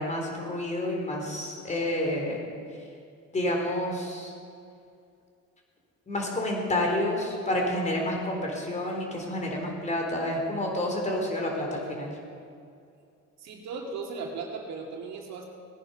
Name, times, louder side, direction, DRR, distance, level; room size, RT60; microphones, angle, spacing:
voice 1, 0.0-2.4 3.3-4.3 6.1-12.1, left 1 dB, 25° left, 0 dB, 3.8 m, -29 dB
voice 2, 13.4-15.5, right 4 dB, 60° right, 1 dB, 2.3 m, -37 dB
18.5 x 10.0 x 5.4 m, 2.4 s
cardioid pair, 110°, 31 cm